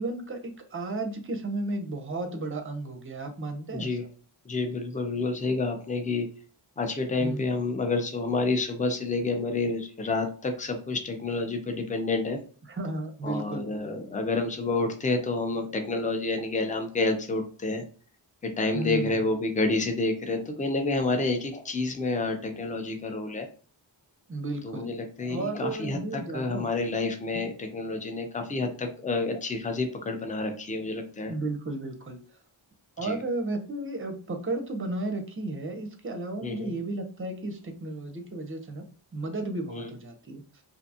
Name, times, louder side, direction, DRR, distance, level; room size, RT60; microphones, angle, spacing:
voice 1, 0.0-3.9 7.2-7.5 12.7-13.6 18.7-19.2 24.3-24.9 25.3-26.9 27.3-27.4 31.3-32.2 33.0-38.9 39.1-40.4, right 2 dB, 25° right, 6 dB, 0.6 m, -33 dB
voice 2, 3.7-4.0 4.4-6.3 6.8-12.4 13.2-17.8 18.4-23.5 24.6-31.3 33.0-33.2 36.4-36.7 39.7-39.9, left 3 dB, 15° left, 5 dB, 0.5 m, -29 dB
2.6 x 2.2 x 2.7 m, 0.41 s
wide cardioid pair, 65°, 48 cm